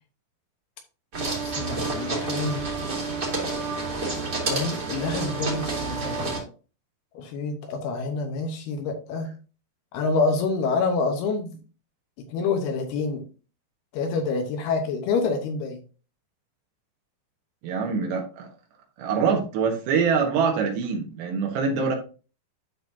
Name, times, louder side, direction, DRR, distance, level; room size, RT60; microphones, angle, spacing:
sound 1, 1.1-6.4, right 3 dB, 30° right, 2.0 m, -29 dB
voice 1, 1.4-2.6 4.4-6.4 7.2-9.3 9.9-11.6 12.3-13.2 13.9-15.8, left 4 dB, 75° left, 4 dB, 2.7 m, -27 dB
voice 2, 17.6-18.5 19.0-22.0, right 5 dB, 75° right, 1 dB, 3.6 m, -24 dB
12.0 x 4.1 x 2.7 m, 0.34 s
omnidirectional pair, 5.1 m